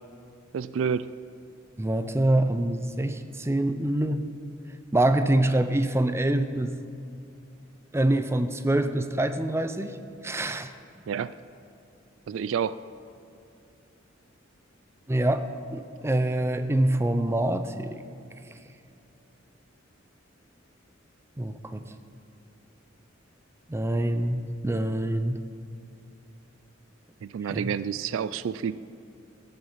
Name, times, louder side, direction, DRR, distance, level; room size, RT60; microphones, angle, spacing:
voice 1, 0.5-1.1 11.1-11.3 12.3-12.8 27.2-28.7, right 7 dB, 70° right, 16 dB, 0.3 m, -29 dB
voice 2, 1.8-4.3 4.9-6.8 7.9-10.0 10.2-10.7 15.1-15.4 15.7-18.0 21.4-21.9 23.7-25.4 27.5-27.7, right 1 dB, 15° right, 10 dB, 0.5 m, -25 dB
15.0 x 8.9 x 5.6 m, 2.6 s
head